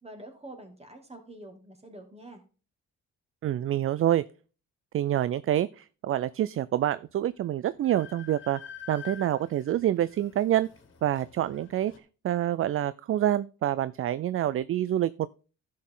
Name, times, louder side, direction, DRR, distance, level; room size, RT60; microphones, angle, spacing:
voice 1, 0.0-2.4, right 1 dB, 20° right, 2.7 m, -46 dB
voice 2, 3.4-4.2 4.9-8.6 8.9-10.7 11.0-11.9 12.2-15.3, right 12 dB, 45° right, 0.4 m, -27 dB
Train, 7.0-7.1 7.4-12.0, left 7 dB, 40° left, 2.0 m, -48 dB
11.5 x 6.4 x 3.8 m
cardioid pair, 90°, 30 cm